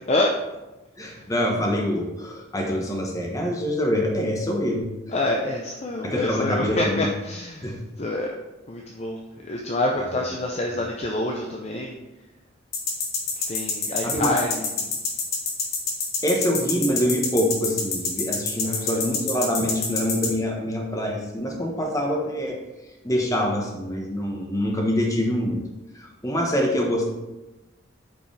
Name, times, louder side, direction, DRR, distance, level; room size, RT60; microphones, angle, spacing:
voice 1, 1.0-4.9 6.0-7.0 7.6-7.8 10.1-10.2 14.0-14.4 16.2-22.6 23.0-25.6 26.0-27.1, equal, 15° left, 1 dB, 1.1 m, -25 dB
voice 2, 5.1-8.3 8.7-12.0 13.5-14.9 18.6-19.0, left 2 dB, 30° left, -1 dB, 0.6 m, -27 dB
sound 1, 12.7-20.3, left 5 dB, 50° left, 1.4 m, -26 dB
8.6 x 5.0 x 3.3 m, 1.0 s
head